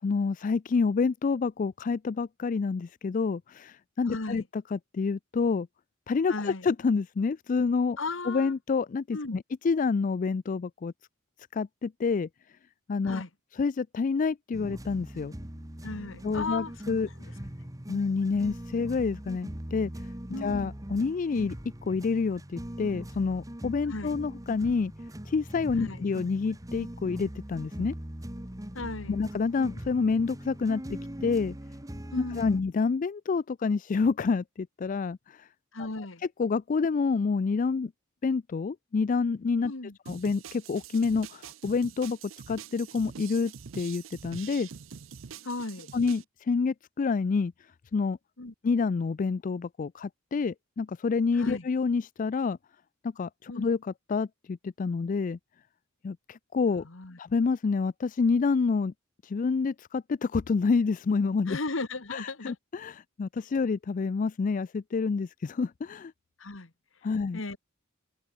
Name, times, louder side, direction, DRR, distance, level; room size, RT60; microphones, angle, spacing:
voice 1, 0.0-5.7 6.1-8.0 8.3-10.9 11.5-12.3 12.9-13.2 13.6-15.3 16.2-17.1 17.9-20.1 20.4-21.5 21.8-24.9 25.3-27.9 29.1-31.5 32.4-35.5 36.4-37.9 38.2-39.7 40.1-42.2 42.5-44.7 45.9-47.5 47.9-48.2 48.6-52.6 53.0-55.4 56.0-56.8 57.2-58.9 59.2-61.6 62.1-66.1 67.0-67.4, left 4 dB, 40° left, 0.4 m, -28 dB
voice 2, 4.0-4.5 6.3-6.7 8.0-8.5 9.1-9.4 13.0-13.3 15.8-16.7 17.0-17.3 20.3-20.7 23.9-24.1 25.7-26.0 28.7-29.2 32.1-32.6 35.7-36.2 39.7-40.0 45.4-45.9 48.4-48.5 51.3-51.7 53.5-53.7 56.8-57.2 61.5-62.6 66.4-66.7 67.3-67.6, left 3 dB, 70° left, 1.7 m, -36 dB
sound 1, 14.5-32.6, equal, 15° right, 1.6 m, -41 dB
sound 2, 40.1-46.2, right 7 dB, 75° right, 0.6 m, -45 dB
head